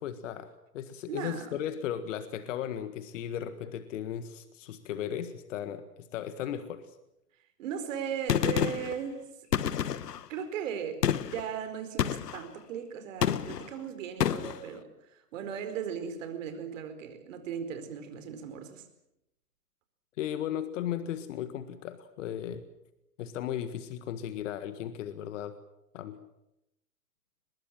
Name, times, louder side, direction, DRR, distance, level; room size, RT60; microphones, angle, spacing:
voice 1, 0.0-7.0 20.2-22.6 23.2-25.5 25.9-26.2, left 10 dB, 50° left, 11 dB, 1.7 m, -36 dB
voice 2, 1.1-1.5 7.6-9.3 10.3-11.0 11.3-18.8, right 8 dB, 50° right, 8 dB, 4.6 m, -37 dB
Gunshot gunfire, 8.3-9.0 9.5-10.2 11.0-11.4 12.0-12.4 13.2-13.7 14.2-14.6, left 9 dB, 75° left, 1.3 m, -28 dB
23.5 x 21.5 x 7.4 m, 0.85 s
hypercardioid pair, 130°, 48 cm